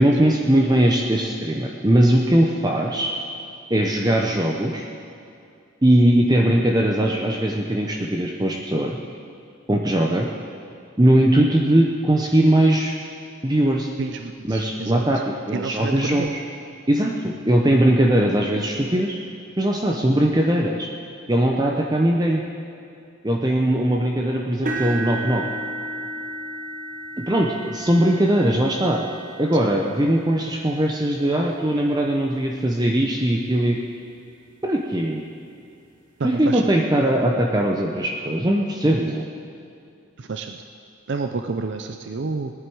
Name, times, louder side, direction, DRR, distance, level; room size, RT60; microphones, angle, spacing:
voice 1, 0.0-3.1 3.7-4.9 5.8-9.0 9.7-10.3 11.0-12.9 13.4-13.9 14.4-16.3 16.9-19.2 19.6-20.9 21.3-22.4 23.2-25.4 27.2-29.0 29.4-33.8 34.6-35.2 36.2-39.2, right 1 dB, 20° right, 0 dB, 0.7 m, -20 dB
voice 2, 14.0-15.0 15.5-16.3 36.2-36.6 40.2-40.6 41.1-42.5, right 4 dB, 60° right, 6 dB, 0.5 m, -29 dB
sound 1, 24.7-32.7 33.3-33.6 34.0-34.1 35.5-35.6, right 1 dB, 40° right, 1.2 m, -35 dB
19.0 x 11.0 x 4.7 m, 2.5 s
head